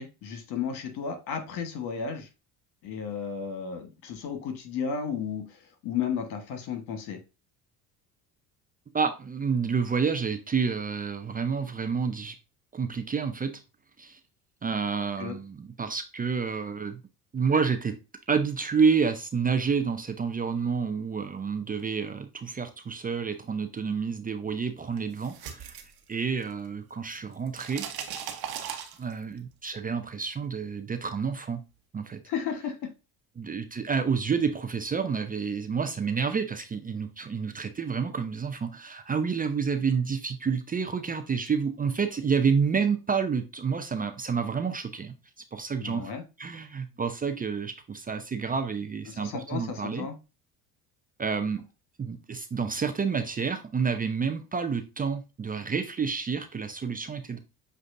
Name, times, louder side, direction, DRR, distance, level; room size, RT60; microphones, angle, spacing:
voice 1, 0.0-2.3 2.8-7.2 15.2-15.4 32.3-32.9 45.8-46.2 49.1-50.1, left 6 dB, 65° left, 1.3 m, -33 dB
voice 2, 8.9-12.4 12.7-13.6 14.0-14.2 14.6-17.0 17.3-18.0 18.3-25.8 26.1-27.9 29.0-31.6 31.9-32.2 33.4-45.1 45.5-46.1 46.4-50.1 51.2-51.6 52.0-57.4, right 5 dB, 20° right, 0.5 m, -29 dB
sound 1, 25.0-26.7 26.9-29.4, right 8 dB, 55° right, 1.1 m, -38 dB
7.5 x 2.6 x 2.5 m
hypercardioid pair, 65°, 43 cm